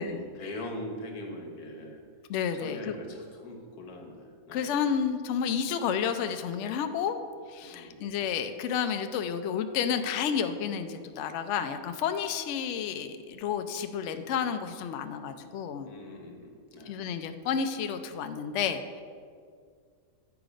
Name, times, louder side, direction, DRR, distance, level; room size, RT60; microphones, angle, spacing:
voice 1, 0.0-2.0 2.5-4.7 7.6-8.1 15.8-17.0, left 1 dB, 90° left, 2 dB, 1.6 m, -42 dB
voice 2, 2.3-2.9 4.5-7.2 7.5-15.9 16.9-19.0, left 7 dB, 65° left, 8 dB, 0.7 m, -31 dB
9.3 x 4.8 x 5.0 m, 2.1 s
omnidirectional pair, 1.5 m